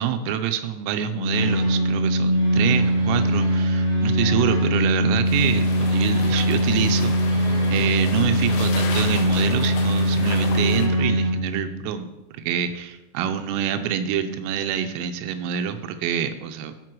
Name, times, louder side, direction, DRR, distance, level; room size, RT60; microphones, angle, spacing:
voice 1, 0.0-12.1 12.4-16.7, right 9 dB, 85° right, 8 dB, 3.1 m, -26 dB
Organ, 1.1-11.9, equal, 85° left, 3.6 m, -21 dB
sound 1, 1.3-11.3, right 3 dB, 45° right, 1.2 m, -38 dB
sound 2, 5.2-10.9, left 5 dB, 70° left, 3.2 m, -34 dB
13.5 x 5.3 x 4.7 m, 1.0 s
omnidirectional pair, 5.8 m